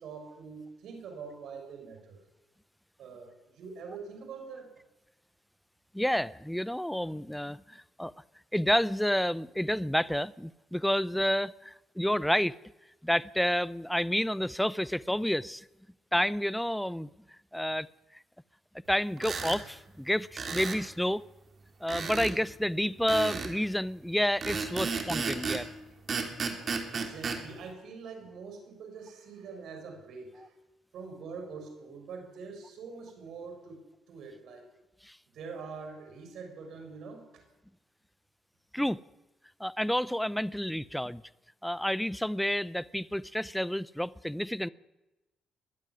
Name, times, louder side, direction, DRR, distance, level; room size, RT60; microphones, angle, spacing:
voice 1, 0.0-2.2 3.0-4.7 26.9-30.5 30.9-33.8 34.1-34.6 35.3-37.2, right 5 dB, 75° right, 4 dB, 6.8 m, -44 dB
voice 2, 5.9-8.1 8.5-12.5 13.0-15.7 16.1-17.1 17.5-17.9 18.9-21.2 21.8-25.7 35.0-35.2 38.7-39.0 39.6-41.2 41.6-44.7, equal, 5° left, 19 dB, 0.6 m, -29 dB
sound 1, 19.2-19.6 20.4-20.8 21.9-22.4 23.1-23.5 24.4-25.7 26.1-27.4, right 5 dB, 45° right, 3.4 m, -33 dB
22.0 x 12.5 x 9.8 m, 1.0 s
cardioid pair, 90°, 0 cm